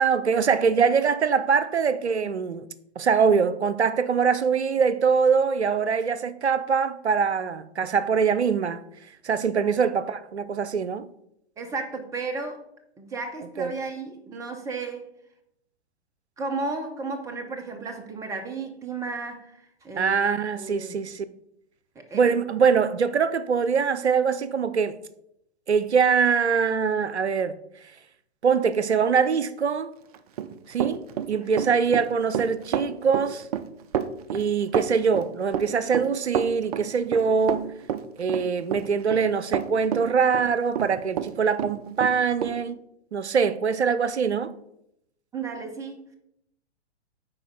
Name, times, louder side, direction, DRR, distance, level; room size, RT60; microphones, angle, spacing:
voice 1, 0.0-2.7 3.0-8.8 9.2-11.1 13.6-13.7 20.0-21.2 22.1-25.0 25.7-27.6 28.4-29.9 30.7-33.5 34.3-37.7 38.2-42.8 43.1-44.5, right 6 dB, 85° right, 0.5 m, -23 dB
voice 2, 11.6-12.6 13.0-15.1 16.4-20.2 20.6-21.1 21.9-22.4 31.3-31.7 45.3-46.1, right 3 dB, 10° right, 0.8 m, -34 dB
Run, 30.1-41.3 41.6-42.5, right 9 dB, 35° right, 0.5 m, -29 dB
9.8 x 4.3 x 3.9 m
figure-of-eight pair, 110°, 33 cm